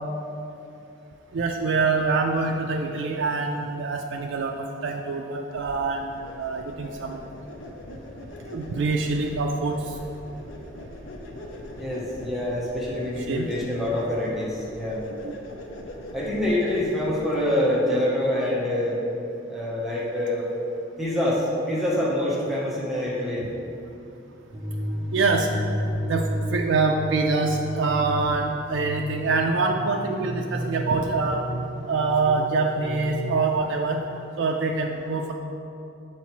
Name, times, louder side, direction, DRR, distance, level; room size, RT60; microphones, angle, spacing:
voice 1, 1.3-7.2 8.5-10.0 13.2-13.5 15.2-15.3 25.1-25.5 26.0-31.5 31.9-34.0 34.4-35.3, right 3 dB, 75° right, 1 dB, 0.4 m, -25 dB
sound 1, 5.5-17.2, left 1 dB, 85° left, 0.6 m, -41 dB
voice 2, 11.8-15.0 16.1-19.0 19.5-20.5 21.0-23.5, left 1 dB, ahead, -7 dB, 0.9 m, -26 dB
sound 2, 24.5-33.6, equal, 35° right, 0.8 m, -32 dB
7.1 x 4.5 x 3.0 m, 2.7 s
head